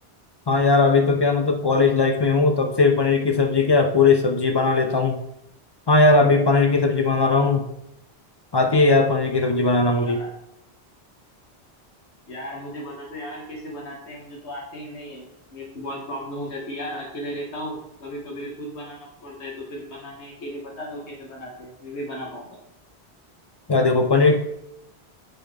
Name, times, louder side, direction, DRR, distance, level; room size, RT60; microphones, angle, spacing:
voice 1, 0.5-5.2 5.9-7.6 8.5-10.2 23.7-24.4, left 3 dB, 40° left, 5 dB, 0.3 m, -18 dB
voice 2, 7.1-7.6 9.9-10.3 12.3-22.6, equal, 85° left, -2 dB, 1.5 m, -36 dB
9.1 x 3.7 x 3.5 m, 0.84 s
omnidirectional pair, 1.1 m